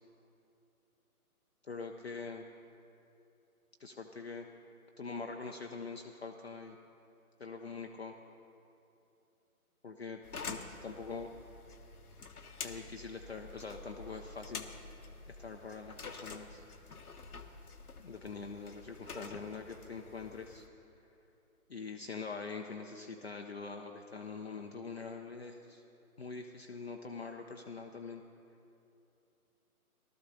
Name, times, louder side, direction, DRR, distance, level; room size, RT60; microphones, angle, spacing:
voice 1, 1.6-2.4 3.8-4.5 5.0-6.8 7.4-8.1 9.8-10.2 10.5-11.3 12.6-14.7 15.3-16.6 18.0-20.6 21.7-25.8 26.2-28.2, left 4 dB, 45° left, 2 dB, 0.6 m, -44 dB
sound 1, 10.2-20.7, left 4 dB, 80° left, 1.0 m, -48 dB
19.0 x 13.0 x 2.7 m, 2.7 s
figure-of-eight pair, 150°, 45 cm